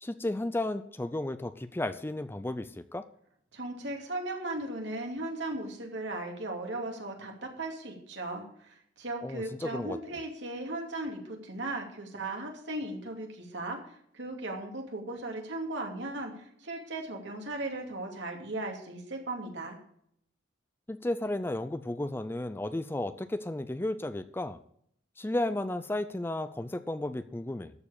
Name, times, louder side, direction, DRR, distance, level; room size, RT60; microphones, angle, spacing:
voice 1, 0.0-3.0 9.2-10.0 20.9-24.6 25.2-27.7, left 1 dB, 10° left, 12 dB, 0.4 m, -33 dB
voice 2, 3.5-19.8, right 2 dB, 70° right, 2 dB, 2.7 m, -37 dB
13.5 x 4.8 x 8.6 m, 0.69 s
head